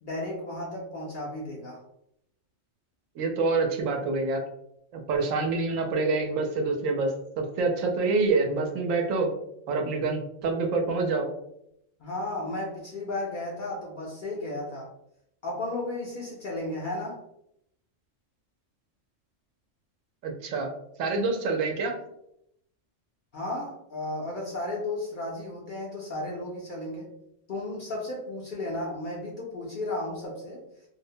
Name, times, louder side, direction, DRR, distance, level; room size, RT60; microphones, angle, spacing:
voice 1, 0.0-1.8 12.0-14.9 15.4-17.2 23.3-27.1 27.5-30.6, left 2 dB, 60° left, -3 dB, 0.5 m, -34 dB
voice 2, 3.2-4.4 4.9-9.3 9.7-11.3 20.2-20.7 21.0-22.0, right 3 dB, 85° right, 2 dB, 1.0 m, -26 dB
2.5 x 2.0 x 2.6 m, 0.77 s
omnidirectional pair, 1.3 m